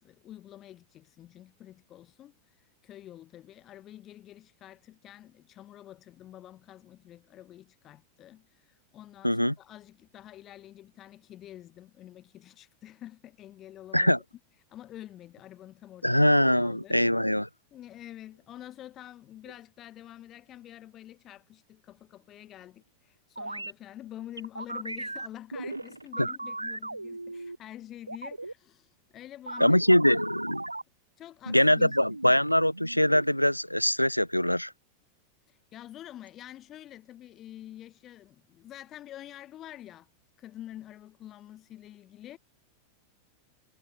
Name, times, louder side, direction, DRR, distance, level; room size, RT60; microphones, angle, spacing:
voice 1, 0.0-14.1 14.7-17.0 17.7-30.2 31.2-32.0 35.5-40.1 40.4-42.4, left 12 dB, 30° left, 4.6 m, -47 dB
voice 2, 9.2-9.5 13.9-14.2 16.0-17.5 26.2-26.3 29.6-30.6 31.5-34.7, equal, 90° left, 0.7 m, -23 dB
sound 1, 23.4-23.7 24.4-27.6 28.1-28.5 29.5-30.8 31.9-33.3, right 2 dB, 85° right, 1.1 m, -37 dB
figure-of-eight pair, 90°, 0 cm